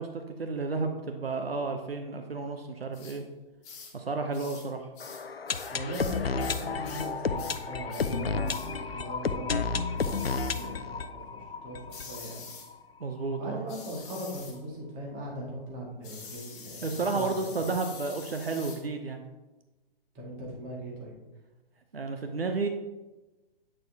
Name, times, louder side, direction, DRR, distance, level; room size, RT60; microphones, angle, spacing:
voice 1, 0.0-3.2 3.9-4.9 13.0-13.7 16.8-19.2 21.9-22.7, right 3 dB, 80° right, 5 dB, 0.8 m, -32 dB
sound 1, 2.9-3.2 3.6-4.0 4.3-4.7 5.0-7.1 7.4-7.6 7.9-8.2 8.5-8.7 10.0-10.7 11.9-12.7 13.7-14.6 16.0-18.8, left 5 dB, 25° left, 1.5 m, -45 dB
sound 2, 5.0-12.8 13.0-13.1 13.3-13.4 14.0-14.1, left 5 dB, 85° left, 0.5 m, -32 dB
voice 2, 5.7-11.0 11.3-12.4 13.4-17.5 20.1-21.1, equal, 25° right, -3 dB, 2.1 m, -39 dB
8.7 x 6.5 x 2.8 m, 1.1 s
figure-of-eight pair, 120°, 29 cm